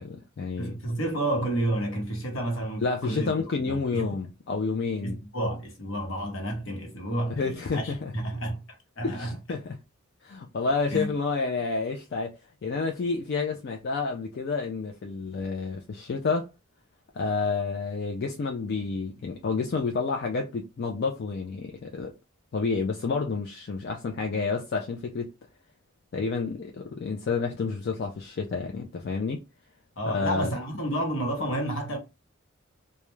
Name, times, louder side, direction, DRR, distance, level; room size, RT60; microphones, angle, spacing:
voice 1, 0.0-0.8 2.8-5.2 7.4-8.1 9.0-9.8 10.2-12.4 12.6-16.5 17.1-22.1 22.5-25.3 26.1-29.4 30.1-30.5, left 4 dB, 50° left, 0.4 m, -29 dB
voice 2, 0.6-3.3 3.7-4.1 5.0-8.6 9.0-9.3 10.9-11.1 30.0-32.0, right 1 dB, 70° left, 1.0 m, -30 dB
2.3 x 2.1 x 3.0 m
head